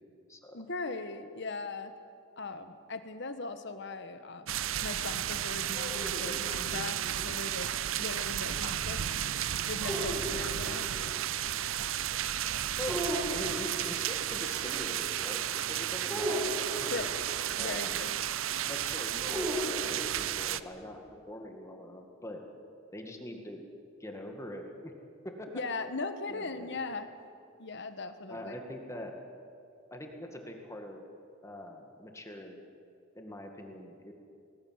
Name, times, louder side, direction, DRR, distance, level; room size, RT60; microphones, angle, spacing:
voice 1, 0.5-1.9 2.4-7.7 8.0-9.1 9.7-10.9 16.9-17.1 17.6-18.1 25.5-27.1 27.6-28.5, left 3 dB, 60° left, 9 dB, 1.4 m, -39 dB
sound 1, 4.5-20.6, right 11 dB, 75° right, 0.6 m, -33 dB
sound 2, 5.7-7.3 9.8-11.0 12.9-13.7 16.1-17.2 19.2-20.4, equal, 5° right, 6.3 m, -37 dB
voice 2, 13.3-18.1 18.7-21.0 21.3-22.4 22.9-23.6 24.0-24.9 25.4-25.5 26.3-26.8 28.3-29.2 29.9-31.0 31.4-32.6 33.1-34.1, left 1 dB, 15° left, 2 dB, 2.0 m, -43 dB
19.5 x 19.0 x 9.6 m, 2.5 s
head